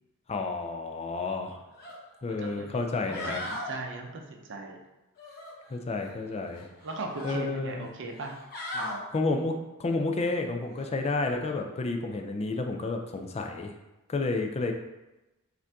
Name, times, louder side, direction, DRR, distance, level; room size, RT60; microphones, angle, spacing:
voice 1, 0.3-1.6 2.2-3.4 5.7-6.7 7.2-7.9 9.1-13.7 14.1-14.7, left 3 dB, 30° left, 4 dB, 0.4 m, -30 dB
sound 1, 1.8-2.0 2.4-2.5 2.9-3.7 5.2-6.1 6.5-7.4 8.1-9.0 10.7-10.9, left 1 dB, 45° left, 0.9 m, -38 dB
voice 2, 2.3-2.8 3.1-4.8 6.8-8.3 8.7-9.0, right 2 dB, 55° right, 2 dB, 0.6 m, -38 dB
5.3 x 2.6 x 3.4 m, 1.0 s
head